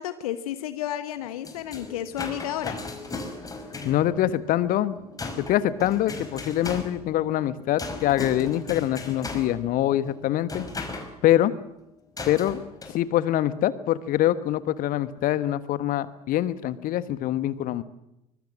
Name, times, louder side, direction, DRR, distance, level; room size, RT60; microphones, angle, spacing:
voice 1, 0.0-2.8, left 12 dB, 65° left, 12 dB, 1.1 m, -32 dB
sound 1, 1.2-11.1 12.2-12.9, left 3 dB, 20° left, 5.1 m, -38 dB
voice 2, 3.8-5.0 5.4-10.6 11.2-11.5 12.3-12.6 12.9-17.8, left 13 dB, 45° left, 15 dB, 1.4 m, -24 dB
24.0 x 22.0 x 7.4 m, 0.84 s
figure-of-eight pair, 65°, 20 cm